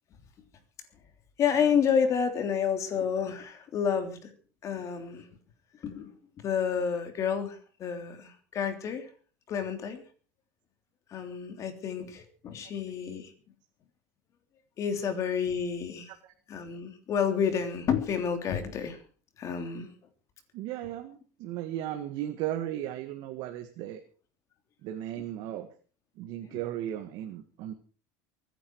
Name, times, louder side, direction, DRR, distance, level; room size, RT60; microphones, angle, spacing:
voice 1, 1.4-4.3 4.6-5.3 5.8-6.1 6.4-9.1 9.5-10.0 11.1-13.3 14.8-16.1 16.5-19.0 19.4-19.9 26.5-26.6, left 7 dB, 40° left, 7 dB, 3.2 m, -30 dB
voice 2, 20.5-24.0 24.8-25.7 26.2-27.7, right 12 dB, 60° right, 6 dB, 1.8 m, -36 dB
23.5 x 10.0 x 4.7 m, 0.40 s
supercardioid pair, 135°, 8 cm